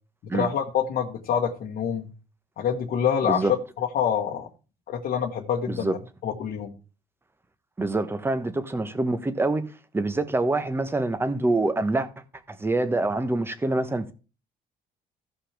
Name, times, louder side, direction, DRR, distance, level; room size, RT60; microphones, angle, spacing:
voice 1, 0.2-2.1 2.6-4.5 4.9-6.0 6.2-6.7, left 8 dB, 60° left, 1.3 m, -26 dB
voice 2, 3.2-3.5 5.7-5.9 7.8-12.1 12.5-14.1, right 2 dB, 15° right, 1.1 m, -25 dB
15.5 x 5.6 x 3.4 m
cardioid pair, 110°, 17 cm